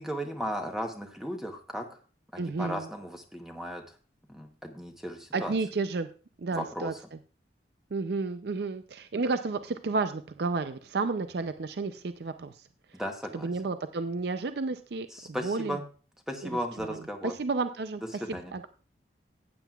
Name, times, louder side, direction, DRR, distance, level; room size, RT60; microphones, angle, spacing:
voice 1, 0.0-2.0 2.3-3.8 4.3-5.6 6.5-6.9 12.9-13.5 15.1-15.8 16.3-17.3 18.2-18.5, equal, ahead, 4 dB, 0.9 m, -36 dB
voice 2, 2.4-2.9 5.3-6.1 6.4-6.9 7.9-12.6 13.3-15.8 16.4-18.7, right 3 dB, 60° right, 10 dB, 0.5 m, -32 dB
14.5 x 9.1 x 2.3 m, 0.37 s
head